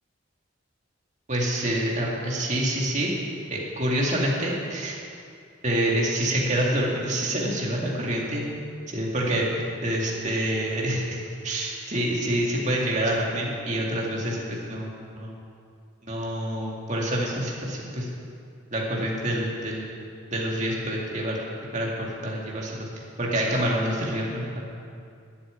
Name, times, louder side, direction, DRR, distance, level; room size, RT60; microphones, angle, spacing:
voice 1, 1.3-3.1 3.5-5.0 5.6-8.4 8.9-9.5 9.8-15.4 16.0-18.1 18.7-20.0 20.3-21.4 21.7-22.9 23.2-24.6, right 1 dB, 35° right, -3 dB, 2.3 m, -27 dB
11.5 x 7.8 x 9.4 m, 2.4 s
head